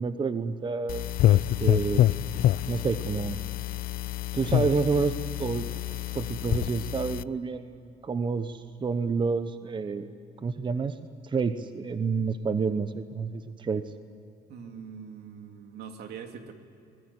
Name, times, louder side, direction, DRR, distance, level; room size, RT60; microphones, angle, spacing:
voice 1, 0.0-2.1 2.7-3.4 4.3-5.1 5.4-5.7 6.1-10.1 10.4-11.0 11.2-13.8, right 4 dB, 30° right, 11 dB, 0.9 m, -29 dB
sound 1, 0.9-7.2, left 13 dB, 60° left, 0.5 m, -26 dB
voice 2, 14.5-16.5, right 6 dB, 75° right, 5 dB, 2.6 m, -42 dB
22.0 x 20.0 x 9.7 m, 2.6 s
cardioid pair, 110°, 17 cm